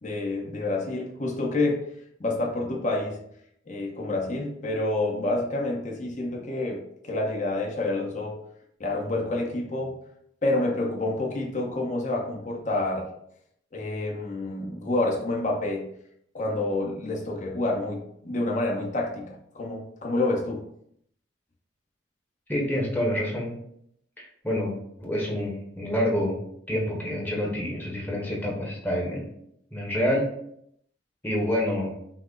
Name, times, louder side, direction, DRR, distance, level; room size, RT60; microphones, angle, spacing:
voice 1, 0.0-1.8 2.2-3.2 3.7-8.4 8.8-9.9 10.4-13.1 13.7-15.9 16.3-20.6, left 2 dB, 40° left, -2 dB, 0.9 m, -28 dB
voice 2, 22.5-23.5 24.2-26.4 26.7-29.3 29.7-30.3 31.2-31.9, equal, 10° left, -3 dB, 1.0 m, -27 dB
5.8 x 2.0 x 3.8 m, 0.72 s
head